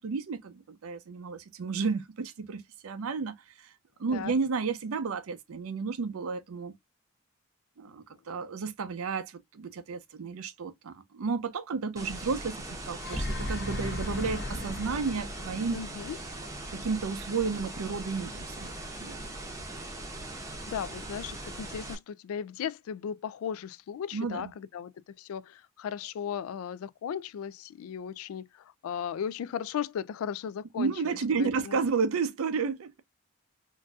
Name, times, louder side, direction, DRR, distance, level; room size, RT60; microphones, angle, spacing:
voice 1, 0.0-3.7 4.0-6.7 7.8-15.8 16.7-18.7 19.0-19.2 24.1-24.5 30.8-33.0, right 5 dB, 90° right, 0.5 m, -32 dB
sound 1, 12.0-22.0, right 2 dB, 15° right, 0.6 m, -40 dB
sound 2, 12.8-16.9, left 1 dB, 50° left, 0.7 m, -36 dB
voice 2, 15.7-16.2 20.7-24.9 25.2-31.8, left 8 dB, 90° left, 0.3 m, -36 dB
3.8 x 2.5 x 2.3 m
head